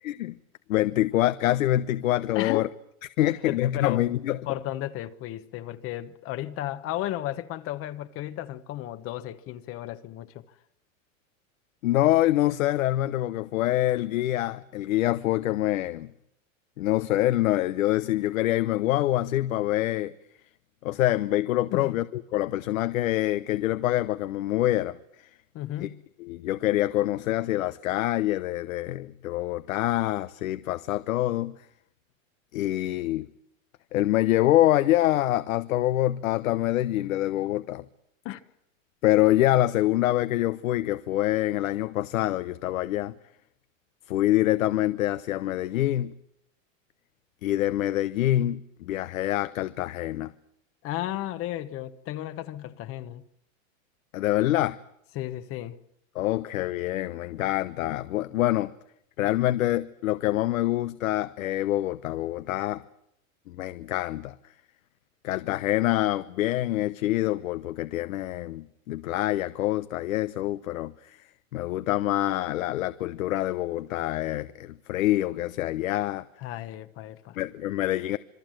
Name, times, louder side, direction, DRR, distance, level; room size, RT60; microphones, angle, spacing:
voice 1, 0.0-0.4 0.7-2.7 3.2-4.4 11.8-16.1 16.8-20.1 20.8-25.0 25.8-25.9 26.2-31.6 32.5-33.3 33.9-37.8 39.0-43.1 44.1-46.1 47.4-50.3 54.1-54.8 56.1-58.7 59.2-62.8 63.5-64.3 65.2-71.2 71.5-76.3 77.4-78.2, left 15 dB, 85° left, 0.9 m, -25 dB
voice 2, 2.3-2.7 3.3-4.0 4.5-10.4 21.7-22.0 25.5-26.0 38.2-38.4 50.8-53.2 55.1-55.8 76.4-77.4, left 14 dB, 35° left, 1.0 m, -34 dB
26.5 x 22.0 x 7.7 m
supercardioid pair, 140°, 39 cm